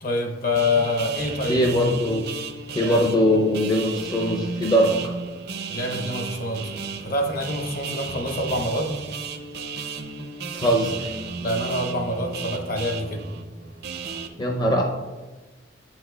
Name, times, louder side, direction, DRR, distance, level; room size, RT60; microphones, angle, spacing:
voice 1, 0.0-1.7 2.8-3.1 5.7-6.7 7.0-8.9 11.4-13.3, left 2 dB, 55° left, 3 dB, 0.9 m, -26 dB
sound 1, 0.5-14.3, right 5 dB, 60° right, 0.5 m, -34 dB
voice 2, 1.5-2.2 2.7-5.2 10.5-11.1 14.4-14.8, equal, 25° left, 0 dB, 0.5 m, -21 dB
7.8 x 5.8 x 2.2 m, 1.2 s
head